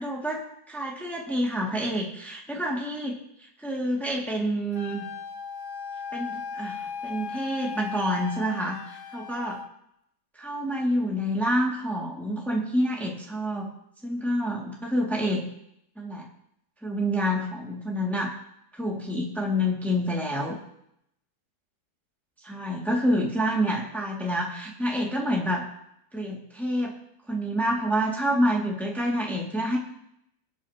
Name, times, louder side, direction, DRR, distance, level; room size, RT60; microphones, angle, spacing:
voice 1, 0.0-5.0 6.1-9.6 10.3-13.7 14.0-15.5 16.0-16.3 16.8-18.3 18.7-20.6 22.4-25.7 26.1-27.0 27.3-29.8, equal, ahead, -3 dB, 2.1 m, -28 dB
Wind instrument woodwind instrument, 4.7-9.7, left 6 dB, 65° left, 0.8 m, -37 dB
24.0 x 9.4 x 2.9 m, 0.76 s
omnidirectional pair, 1.8 m